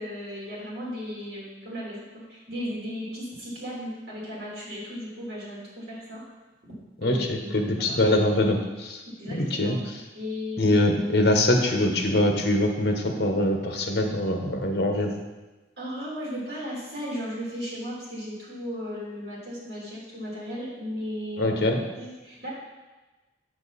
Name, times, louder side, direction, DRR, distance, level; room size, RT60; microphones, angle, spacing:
voice 1, 0.0-6.2 7.0-8.0 9.2-9.8 10.1-10.8 15.8-21.6 22.0-22.5, equal, 55° right, -6 dB, 3.2 m, -36 dB
voice 2, 7.0-9.0 9.3-9.9 10.6-15.2 21.4-21.8, left 1 dB, 55° left, 3 dB, 1.1 m, -23 dB
7.7 x 7.1 x 4.1 m, 1.2 s
head